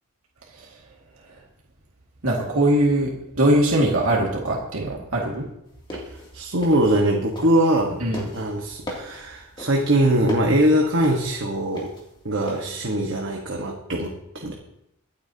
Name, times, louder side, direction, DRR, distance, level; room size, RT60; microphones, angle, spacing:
voice 1, 2.2-5.5 8.0-8.3, right 1 dB, 80° right, -3 dB, 2.2 m, -22 dB
sound 1, 5.7-7.8 8.1-12.7, left 1 dB, 20° left, 2.7 m, -37 dB
voice 2, 6.3-8.0 8.3-11.9 12.2-14.5, right 1 dB, 55° right, 0 dB, 1.4 m, -22 dB
24.0 x 8.6 x 2.9 m, 0.81 s
head